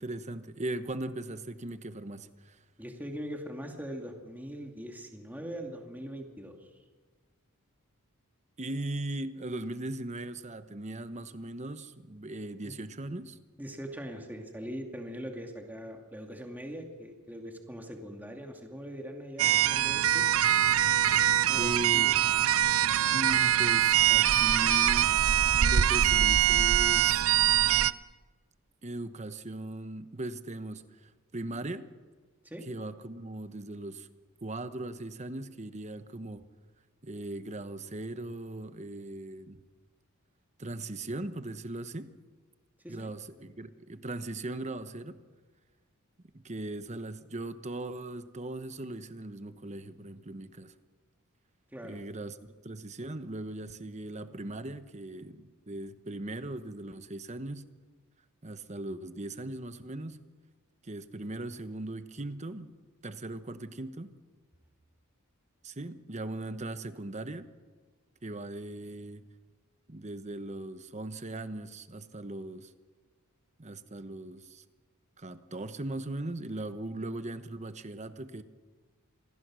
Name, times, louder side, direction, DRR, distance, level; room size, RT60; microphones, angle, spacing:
voice 1, 0.0-2.6 8.6-13.4 21.5-22.1 23.1-25.2 25.5-27.2 28.8-31.9 32.6-34.1 34.4-36.4 37.0-39.6 40.6-42.1 42.9-45.2 46.3-50.7 51.8-52.4 52.6-57.7 58.4-60.2 60.8-62.7 63.0-64.2 65.6-67.5 68.2-69.2 69.9-72.7 73.6-74.6 75.2-78.4, right 2 dB, 30° right, 11 dB, 1.1 m, -39 dB
voice 2, 2.8-6.7 12.6-12.7 13.6-20.3 21.5-22.2 32.4-32.6 42.8-43.1 51.7-52.0, equal, 10° right, 2 dB, 2.5 m, -41 dB
sound 1, 19.4-27.9, right 11 dB, 65° right, 0.6 m, -23 dB
27.0 x 20.0 x 6.3 m, 1.4 s
head